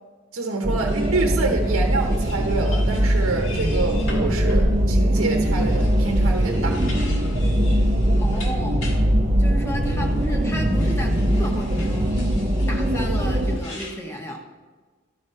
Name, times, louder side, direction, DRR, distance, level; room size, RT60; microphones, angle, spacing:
voice 1, 0.3-6.8, right 3 dB, 75° right, 2 dB, 0.9 m, -27 dB
sound 1, 0.6-13.6, equal, 30° right, 0.6 m, -21 dB
sound 2, 0.9-9.0 9.8-13.9, left 3 dB, 75° left, 1.9 m, -43 dB
voice 2, 8.2-8.9 9.4-12.2 12.7-14.4, equal, 10° left, 2 dB, 1.0 m, -33 dB
12.5 x 4.8 x 5.5 m, 1.4 s
head